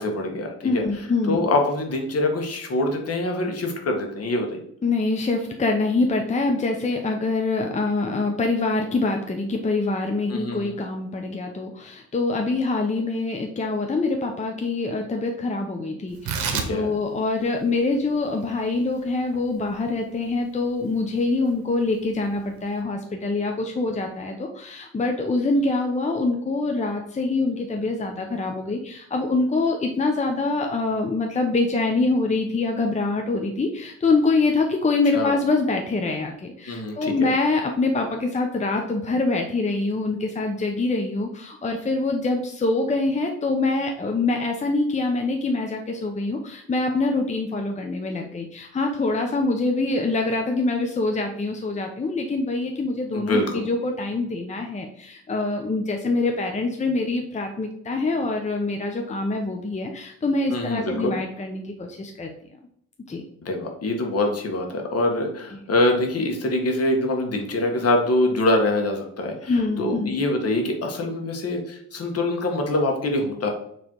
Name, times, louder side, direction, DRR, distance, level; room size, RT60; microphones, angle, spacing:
voice 1, 0.0-0.8 1.2-4.6 10.3-10.7 16.5-16.9 35.1-35.3 36.7-37.3 53.1-53.6 60.5-61.2 63.4-69.5 69.8-73.5, left 2 dB, 55° left, 2 dB, 1.6 m, -24 dB
voice 2, 0.6-1.4 4.8-62.3 63.1-63.2 65.5-65.6 69.5-70.2, left 3 dB, 25° left, 3 dB, 0.8 m, -25 dB
Tearing, 16.1-22.8, right 6 dB, 75° right, 1.1 m, -35 dB
6.4 x 3.3 x 4.5 m, 0.68 s
cardioid pair, 90°, 30 cm